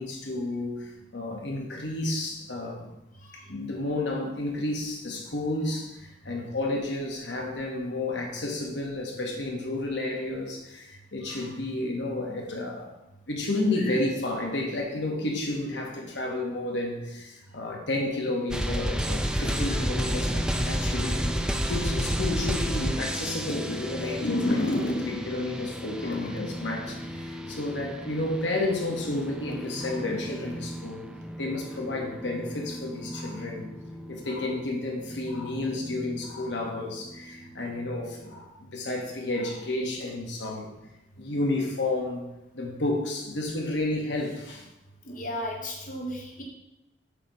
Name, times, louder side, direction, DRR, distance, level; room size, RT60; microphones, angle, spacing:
voice 1, 0.0-2.9 3.5-5.9 6.2-12.9 13.3-21.4 21.7-31.0 31.4-33.7 34.1-40.7 41.2-42.2 42.5-44.6, left 2 dB, 75° left, 0 dB, 1.3 m, -31 dB
sound 1, 18.5-38.4, equal, 5° right, 0.4 m, -33 dB
voice 2, 45.1-46.4, left 1 dB, 50° left, -2 dB, 1.1 m, -35 dB
8.2 x 3.1 x 5.4 m, 0.92 s
head